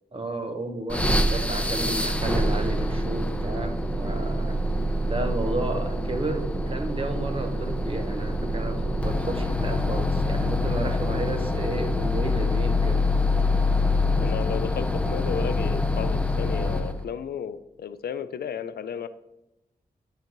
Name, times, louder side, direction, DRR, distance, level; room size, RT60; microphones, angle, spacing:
voice 1, 0.1-4.6 5.1-13.1, right 1 dB, 35° right, 5 dB, 1.0 m, -32 dB
sound 1, 0.9-17.0, left 1 dB, 10° left, 0.6 m, -25 dB
voice 2, 14.2-19.1, left 7 dB, 85° left, 12 dB, 0.4 m, -33 dB
10.5 x 3.9 x 3.0 m, 0.92 s
cardioid pair, 70°, 16 cm